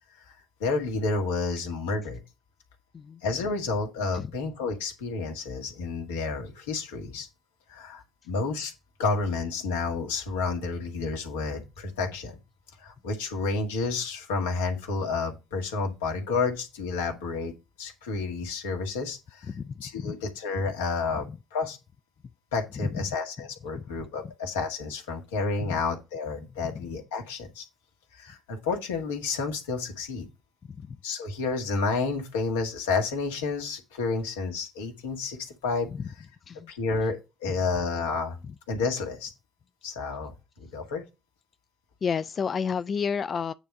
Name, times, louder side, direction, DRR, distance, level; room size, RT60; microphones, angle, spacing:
voice 1, 0.6-2.2 3.2-7.3 7.7-8.7 9.0-12.3 12.8-17.5 17.8-19.5 19.8-21.3 21.5-21.8 22.5-27.6 28.1-30.3 31.0-35.9 36.7-38.4 38.7-39.3 39.8-40.3 40.6-41.0, left 4 dB, 80° left, 1.7 m, -30 dB
voice 2, 19.5-20.1 21.1-21.4 22.8-23.0 23.7-23.8 25.6-25.8 26.6-26.9 30.8-31.0 36.0-36.1 36.5-36.7 38.4-38.5 42.0-43.5, left 6 dB, 45° left, 0.4 m, -31 dB
9.1 x 3.5 x 6.6 m
hypercardioid pair, 50°, 0 cm